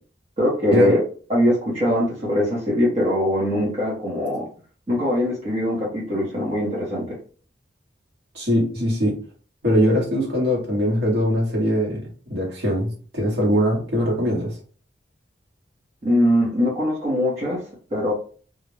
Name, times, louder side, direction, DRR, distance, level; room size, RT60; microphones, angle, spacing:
voice 1, 0.4-1.0 1.3-4.5 4.9-7.2 16.0-17.6 17.9-18.1, left 1 dB, 35° right, -5 dB, 0.7 m, -21 dB
voice 2, 8.3-9.2 9.6-14.6, equal, 65° right, -3 dB, 1.1 m, -21 dB
2.4 x 2.0 x 3.0 m, 0.41 s
head